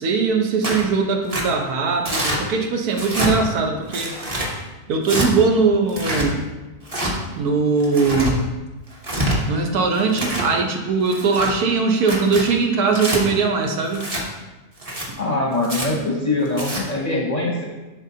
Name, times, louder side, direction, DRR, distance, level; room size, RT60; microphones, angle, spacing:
voice 1, 0.0-4.1 4.9-6.4 7.4-8.4 9.5-14.1, right 4 dB, 85° right, 3 dB, 1.4 m, -20 dB
Tearing, 0.6-0.9 1.3-1.4 2.1-2.4 2.9-3.3 3.9-4.5 5.0-5.3 5.9-6.3 6.9-7.1 7.8-8.3 8.9-9.4 9.9-10.5 11.1-11.5 12.0-12.4 12.9-13.2 13.9-14.2 14.8-15.1 15.6-15.9 16.5-16.8, right 1 dB, 30° right, 1.0 m, -25 dB
voice 2, 15.2-17.6, left 2 dB, 40° left, -2 dB, 0.6 m, -23 dB
11.0 x 3.8 x 2.8 m, 1.1 s
omnidirectional pair, 1.6 m